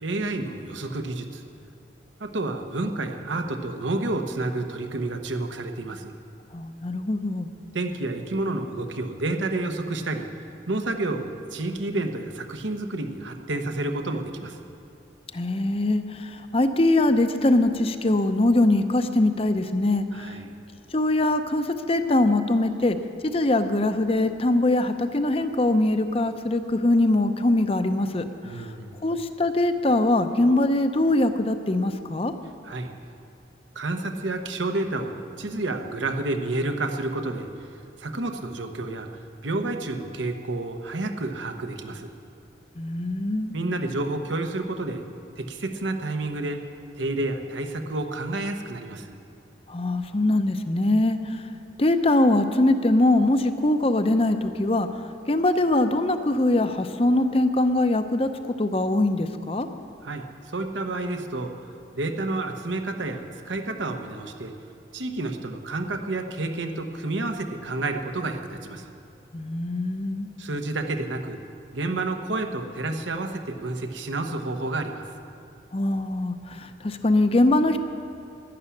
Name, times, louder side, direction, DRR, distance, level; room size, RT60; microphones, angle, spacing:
voice 1, 0.0-1.4 2.2-6.1 7.7-10.3 10.7-14.6 20.1-20.5 28.4-29.0 32.6-32.9 33.7-37.5 38.0-39.1 39.4-42.1 43.5-45.0 45.4-46.6 46.9-49.2 60.0-61.5 61.9-64.5 64.9-68.9 70.4-71.4 71.7-75.0, right 2 dB, 85° right, 5 dB, 1.1 m, -30 dB
voice 2, 6.5-7.5 15.3-20.4 20.9-23.0 23.2-28.7 29.0-32.3 42.8-43.6 49.7-51.5 51.8-54.9 55.3-58.3 58.6-59.7 69.3-70.3 75.7-77.8, left 2 dB, 30° left, 9 dB, 0.7 m, -22 dB
12.0 x 11.5 x 8.4 m, 2.6 s
head